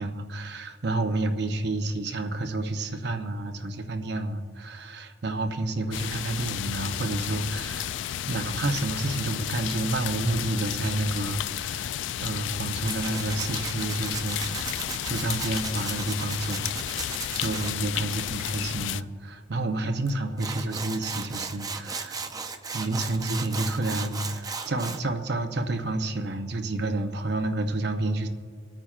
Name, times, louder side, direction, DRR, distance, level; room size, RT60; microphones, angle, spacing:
voice 1, 0.0-7.9 8.3-11.9 12.2-22.2 22.7-28.3, right 2 dB, 60° right, 6 dB, 0.8 m, -30 dB
sound 1, 5.9-19.0, left 11 dB, 75° left, 0.3 m, -32 dB
Tools, 12.8-17.7 20.1-20.2 20.4-25.0, right 4 dB, 20° right, 0.5 m, -36 dB
26.0 x 8.9 x 2.4 m, 2.1 s
head